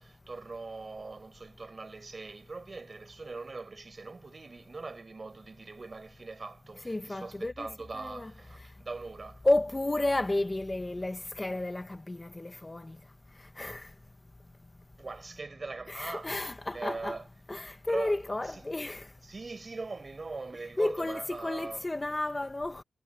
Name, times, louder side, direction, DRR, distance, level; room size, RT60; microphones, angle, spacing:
voice 1, 0.0-9.5 15.0-16.5 16.7-17.3 17.6-18.2 18.5-18.6 19.2-21.9, right 3 dB, 35° right, 5.4 m, -41 dB
voice 2, 6.8-7.7 7.9-8.3 9.4-13.0 13.6-13.9 15.9-17.2 17.5-19.1 20.8-22.8, left 2 dB, 15° left, 1.0 m, -32 dB
wide cardioid pair, 165°, 0 cm